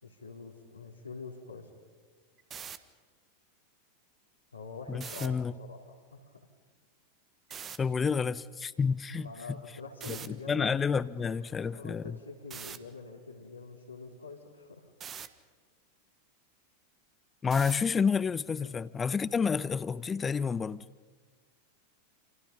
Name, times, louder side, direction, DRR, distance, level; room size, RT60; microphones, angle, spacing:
voice 1, 0.0-1.7 4.5-6.3 9.2-10.8 11.2-11.3 11.7-14.9 18.5-18.7, left 4 dB, 85° left, 4.2 m, -45 dB
sound 1, 2.4-2.8 4.9-5.3 7.5-7.8 10.0-10.3 12.5-12.8 15.0-15.3 17.5-17.9, right 8 dB, 25° right, 1.4 m, -42 dB
voice 2, 4.9-5.5 7.8-9.3 10.1-12.2 17.4-20.8, left 6 dB, 20° left, 0.7 m, -29 dB
28.5 x 28.0 x 5.6 m
figure-of-eight pair, 90°, 0 cm